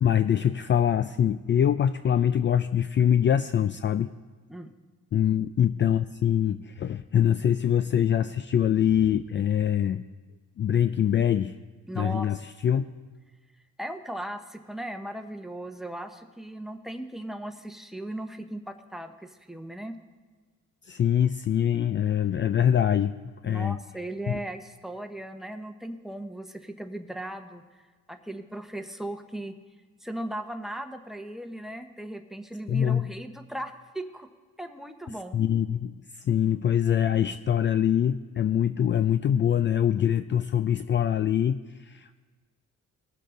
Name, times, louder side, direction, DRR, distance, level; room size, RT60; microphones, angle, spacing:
voice 1, 0.0-4.1 5.1-10.0 10.6-11.6 12.0-12.4 12.6-12.9 20.9-23.1 23.4-23.8 24.3-24.4 32.7-33.1 35.3-42.2, left 9 dB, 40° left, 11 dB, 0.4 m, -24 dB
voice 2, 11.9-12.3 12.7-12.8 13.8-20.0 23.4-27.6 28.1-29.5 30.0-34.3 34.6-35.4, right 1 dB, ahead, 6 dB, 1.0 m, -37 dB
20.0 x 7.4 x 3.9 m, 1.4 s
cardioid pair, 90°, 30 cm